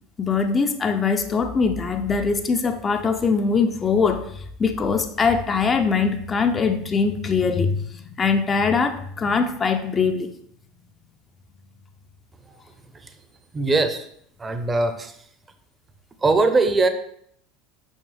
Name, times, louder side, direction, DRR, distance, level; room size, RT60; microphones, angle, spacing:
voice 1, 0.2-10.3, left 5 dB, 25° left, 7 dB, 0.7 m, -22 dB
voice 2, 13.5-14.1 14.4-15.2 16.2-16.9, right 3 dB, 20° right, 9 dB, 0.8 m, -21 dB
6.3 x 5.9 x 3.3 m, 0.67 s
figure-of-eight pair, 70°, 0 cm